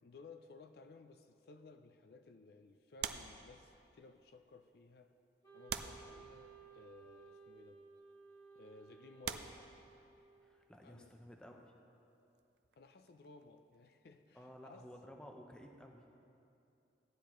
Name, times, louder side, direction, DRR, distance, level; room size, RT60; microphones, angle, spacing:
voice 1, 0.0-5.2 5.5-7.8 8.5-9.6 10.8-11.1 12.8-14.9, left 3 dB, 60° left, 8 dB, 0.4 m, -58 dB
sound 1, 3.0-4.1 4.8-4.9 5.7-6.8 7.7-7.9 8.6-8.7 9.2-10.4 12.3-14.1 14.4-14.6, right 8 dB, 65° right, 0.4 m, -46 dB
Wind instrument woodwind instrument, 5.4-10.5, right 5 dB, 20° left, 1.5 m, -58 dB
voice 2, 10.4-11.7 14.3-16.0, equal, 5° left, 2 dB, 0.7 m, -54 dB
15.5 x 10.0 x 3.0 m, 2.7 s
head